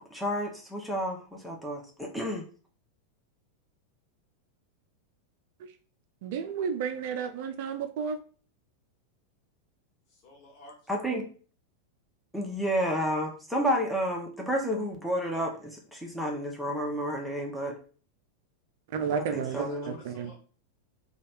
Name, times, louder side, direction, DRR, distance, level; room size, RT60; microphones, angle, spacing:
voice 1, 0.1-2.4 10.9-11.2 12.3-17.7 19.3-20.0, equal, ahead, 0.8 m, -31 dB
voice 2, 6.2-8.2 18.9-20.3, right 6 dB, 50° right, 0.4 m, -32 dB
voice 3, 10.2-11.1 19.4-20.4, left 3 dB, 40° left, 1.5 m, -50 dB
3.1 x 2.4 x 4.3 m
figure-of-eight pair, 90°, 0 cm